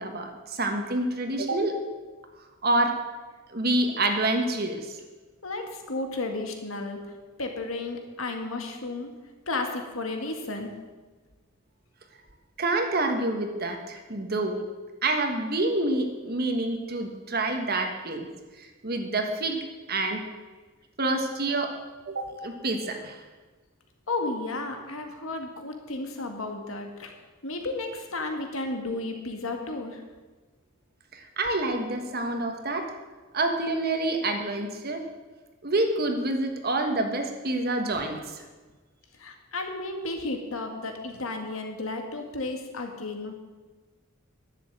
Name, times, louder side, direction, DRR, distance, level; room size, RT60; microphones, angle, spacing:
voice 1, 0.0-1.8 2.6-3.0 3.5-5.0 12.6-14.6 15.0-18.3 18.6-19.6 19.9-20.2 21.0-21.7 22.0-23.2 31.1-32.9 33.3-35.0 35.6-38.4, right 2 dB, 50° right, 4 dB, 1.5 m, -27 dB
voice 2, 5.4-7.0 7.4-9.1 9.5-10.7 24.1-27.2 27.4-30.0 39.2-43.3, left 2 dB, 80° left, 4 dB, 1.8 m, -33 dB
11.5 x 7.4 x 7.6 m, 1.3 s
head